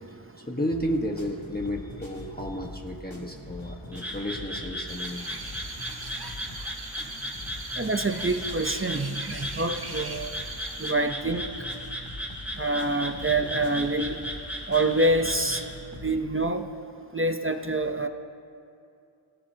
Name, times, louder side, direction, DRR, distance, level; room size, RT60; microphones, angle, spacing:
voice 1, 0.5-5.3, equal, 20° left, 0 dB, 1.3 m, -32 dB
sound 1, 0.7-16.2, left 1 dB, 70° left, 2.7 m, -43 dB
Frog, 3.9-15.7, equal, 5° right, 2.8 m, -36 dB
sound 2, 4.9-10.9, right 3 dB, 50° right, 1.2 m, -42 dB
voice 2, 7.8-10.3 10.8-11.5 12.6-14.2 14.7-15.6 16.0-16.7 17.1-18.1, right 2 dB, 25° right, 6 dB, 0.7 m, -26 dB
25.5 x 16.0 x 2.8 m, 2.5 s
wide cardioid pair, 55°, 47 cm